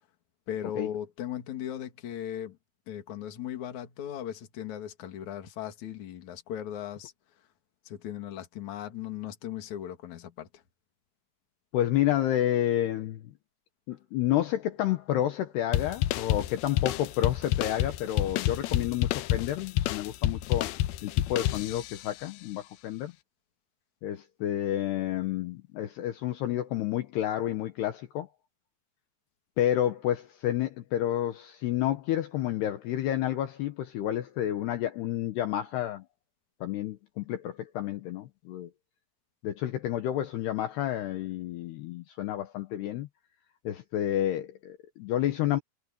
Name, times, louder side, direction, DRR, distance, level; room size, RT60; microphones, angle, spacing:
voice 1, 0.5-2.6 2.9-7.1 7.9-10.5, left 10 dB, 50° left, 2.9 m, -37 dB
voice 2, 11.7-13.3 13.9-20.7 21.0-23.1 24.0-28.3 29.6-36.0 36.6-38.7 39.4-43.1 43.6-45.6, left 12 dB, 70° left, 3.0 m, -30 dB
sound 1, 15.7-22.1, left 13 dB, 90° left, 2.2 m, -29 dB
omnidirectional pair, 5.3 m